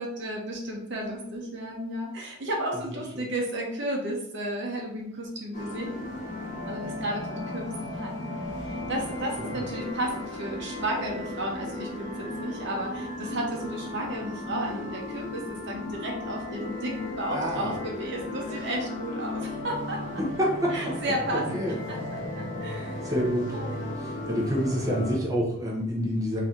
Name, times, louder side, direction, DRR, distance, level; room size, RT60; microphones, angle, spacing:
voice 1, 0.0-5.9 6.6-20.0 20.7-21.6 21.9-23.1 23.5-24.0, right 1 dB, 65° right, -1 dB, 0.9 m, -33 dB
sound 1, 5.5-25.2, left 2 dB, 40° left, 1.0 m, -35 dB
voice 2, 17.3-17.8 20.2-20.7 21.5-21.7 23.0-23.5 24.3-26.4, equal, 20° right, -3 dB, 0.8 m, -27 dB
3.3 x 2.8 x 3.6 m, 0.68 s
head